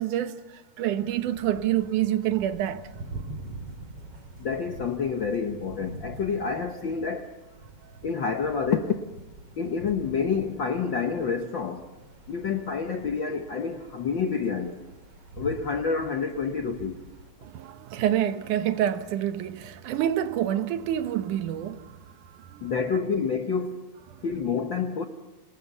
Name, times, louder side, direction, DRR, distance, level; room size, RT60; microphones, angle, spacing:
voice 1, 0.0-2.8 17.4-22.0 22.2-22.7 24.1-24.2, right 11 dB, 80° right, 2.6 m, -27 dB
sound 1, 1.1-17.3, right 2 dB, 50° right, 3.8 m, -45 dB
voice 2, 4.4-7.3 8.0-9.0 9.6-11.9 12.3-14.8 15.4-17.0 22.6-23.9 24.2-25.0, left 5 dB, 65° left, 1.2 m, -28 dB
27.5 x 20.5 x 7.0 m
omnidirectional pair, 3.5 m